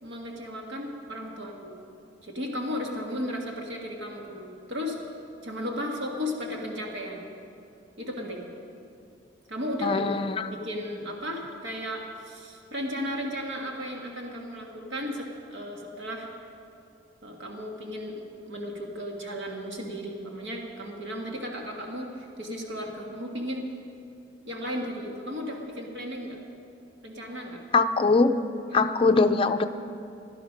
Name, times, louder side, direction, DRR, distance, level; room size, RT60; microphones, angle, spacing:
voice 1, 0.0-1.8 2.2-5.0 5.4-7.3 8.0-8.5 9.5-10.1 10.5-16.3 17.2-23.7 24.4-26.4 27.0-27.6 28.8-28.9, equal, 75° right, 1 dB, 1.6 m, -35 dB
voice 2, 9.8-10.5 27.7-28.3 28.7-29.6, left 3 dB, 30° left, 7 dB, 0.5 m, -22 dB
16.5 x 11.5 x 5.1 m, 2.5 s
head